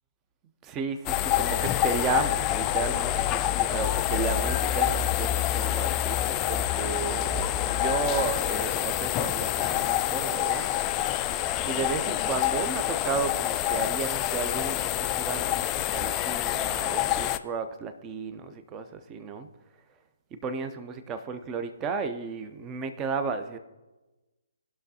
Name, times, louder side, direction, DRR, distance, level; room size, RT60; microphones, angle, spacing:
voice 1, 0.6-10.7 11.6-19.5 20.3-23.6, right 5 dB, 20° right, 10 dB, 0.6 m, -33 dB
sound 1, 1.1-17.4, left 12 dB, 20° left, 0.3 m, -27 dB
18.0 x 6.0 x 2.8 m, 1.1 s
figure-of-eight pair, 135°, 0 cm